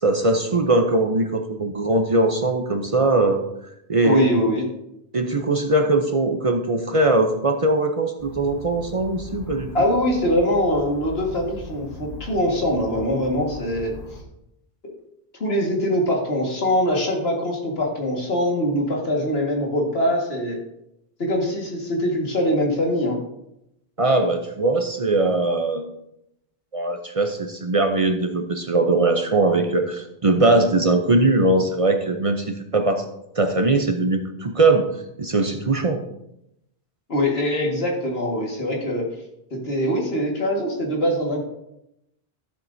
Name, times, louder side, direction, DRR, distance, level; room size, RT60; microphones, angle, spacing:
voice 1, 0.0-3.4 3.9-4.3 5.1-9.7 24.0-25.9 26.7-33.1 33.4-34.8 35.2-36.0, right 2 dB, 40° right, 5 dB, 0.7 m, -20 dB
voice 2, 4.0-4.7 9.7-13.9 14.8-14.9 15.4-20.6 21.2-23.2 37.1-39.1 39.5-41.5, equal, 80° left, -1 dB, 2.0 m, -23 dB
sound 1, 8.2-14.2, left 1 dB, 60° left, 1.3 m, -39 dB
12.5 x 7.4 x 2.7 m, 0.82 s
omnidirectional pair, 1.0 m